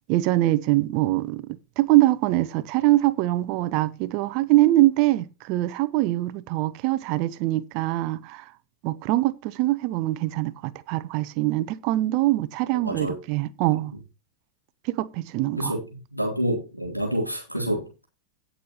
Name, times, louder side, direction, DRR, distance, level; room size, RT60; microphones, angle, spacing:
voice 1, 0.1-8.4 8.8-13.9 14.9-15.7, right 17 dB, 45° right, 0.9 m, -23 dB
voice 2, 12.7-13.1 13.7-13.8 15.6-18.0, equal, 90° left, 3.8 m, -28 dB
17.5 x 6.6 x 3.1 m
figure-of-eight pair, 90°, 0 cm